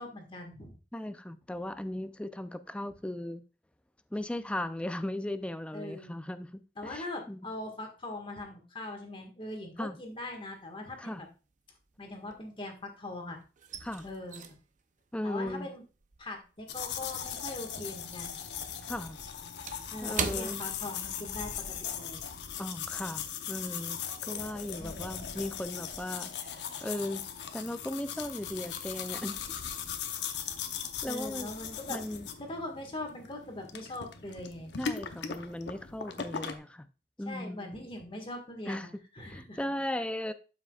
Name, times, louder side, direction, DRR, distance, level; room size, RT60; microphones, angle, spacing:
voice 1, 0.0-0.7 5.7-6.1 6.8-11.3 12.0-13.4 14.0-14.4 15.2-15.8 16.2-18.4 19.9-22.3 24.8-25.2 31.1-32.0 32.4-34.9 37.3-38.9 39.2-39.6, left 2 dB, 30° left, 1.6 m, -41 dB
voice 2, 0.9-3.4 4.1-7.4 9.8-10.0 11.0-11.2 13.8-14.1 15.1-15.7 18.9-19.2 20.0-20.6 22.6-27.3 27.5-29.4 31.0-31.5 31.9-32.3 34.8-36.9 37.2-37.7 38.7-40.3, left 1 dB, 5° left, 0.4 m, -37 dB
sound 1, 10.1-10.7 11.0-13.0 13.2-17.9 18.2-21.5 21.8-22.0 22.5-22.7, right 6 dB, 45° right, 0.7 m, -41 dB
sound 2, 16.7-36.6, left 7 dB, 75° left, 0.8 m, -39 dB
12.0 x 5.8 x 2.4 m
head